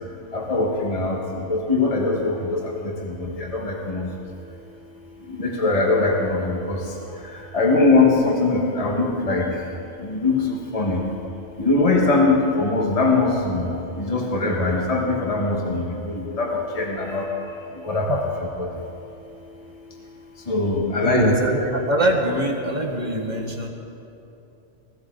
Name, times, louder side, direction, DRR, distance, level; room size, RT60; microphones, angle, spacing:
voice 1, 0.3-1.1 1.5-2.6 3.6-4.0 5.4-6.8 7.5-9.4 10.2-10.3 10.7-11.0 11.6-13.7 14.1-15.8 16.4-16.5 16.8-17.2 17.9-18.2 18.6-18.7 20.5-21.2, left 3 dB, 30° left, -1 dB, 1.6 m, -21 dB
voice 2, 21.0-23.7, right 1 dB, 35° right, 2 dB, 1.6 m, -22 dB
20.0 x 15.0 x 4.0 m, 2.8 s
omnidirectional pair, 1.3 m